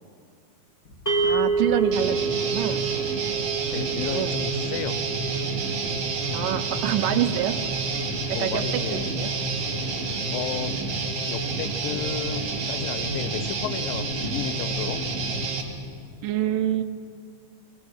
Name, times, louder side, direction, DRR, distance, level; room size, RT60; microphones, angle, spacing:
sound 1, 0.8-15.9, equal, 30° left, 2.3 m, -45 dB
sound 2, 1.1-11.4, right 5 dB, 15° left, 0.7 m, -31 dB
voice 1, 1.2-2.8 4.0-4.3 6.3-7.6 8.3-8.7 8.9-9.3 16.2-16.8, right 11 dB, 75° right, 9 dB, 2.3 m, -26 dB
Guitar, 1.9-15.6, right 3 dB, 45° right, 3.0 m, -29 dB
voice 2, 3.7-5.0 8.3-9.1 10.3-10.7 11.3-15.0, left 10 dB, 80° left, 13 dB, 2.4 m, -33 dB
23.0 x 19.0 x 6.5 m, 2.5 s
omnidirectional pair, 4.1 m